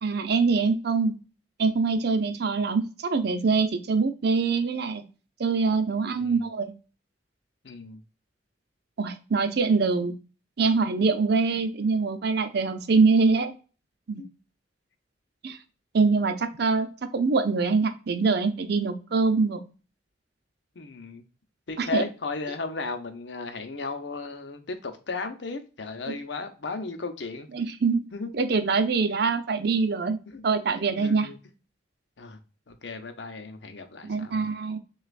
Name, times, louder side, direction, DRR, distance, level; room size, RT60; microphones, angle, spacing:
voice 1, 0.0-1.2 1.6-5.0 5.4-6.7 9.0-10.1 10.6-13.5 14.1-14.2 15.4-15.6 15.9-16.9 17.1-19.6 21.8-22.1 26.1-26.2 27.5-28.1 28.3-30.2 30.4-31.3 34.0-34.8, right 4 dB, 65° right, 0.6 m, -24 dB
voice 2, 7.6-8.0 10.6-10.7 14.2-14.3 20.8-21.2 21.7-27.5 28.1-28.3 30.3-30.4 31.0-31.4 32.2-32.4 32.7-34.5, left 3 dB, 70° left, 0.7 m, -35 dB
6.5 x 2.4 x 2.4 m
head